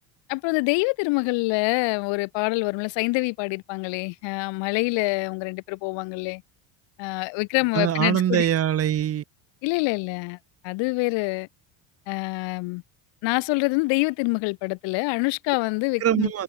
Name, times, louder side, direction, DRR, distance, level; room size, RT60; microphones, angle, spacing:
voice 1, 0.3-6.4 7.0-8.5 9.6-10.4 10.6-11.5 12.1-12.8 13.2-16.3, left 27 dB, 80° left, 4.6 m, -26 dB
voice 2, 7.7-9.2 16.0-16.4, right 10 dB, 35° right, 2.0 m, -23 dB
cardioid pair, 170°, 43 cm